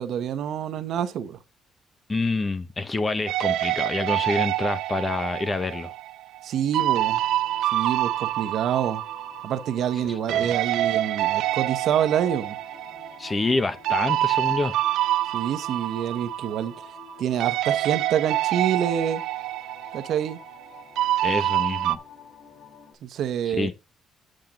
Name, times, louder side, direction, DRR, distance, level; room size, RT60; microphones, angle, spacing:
voice 1, 0.0-1.4 6.4-7.2 7.6-9.0 9.4-12.6 15.3-16.9 17.2-19.2 19.9-20.4 23.0-23.7, right 9 dB, 65° right, 1.0 m, -27 dB
voice 2, 2.1-5.9 10.3-10.5 13.2-14.8 21.2-22.0 23.5-23.7, left 3 dB, 20° left, 0.9 m, -27 dB
sound 1, 3.3-10.0 10.3-17.1 17.4-22.0, right 14 dB, 90° right, 0.5 m, -27 dB
sound 2, 6.9-22.9, left 6 dB, 70° left, 4.0 m, -49 dB
8.9 x 7.8 x 3.8 m
cardioid pair, 140°, 0 cm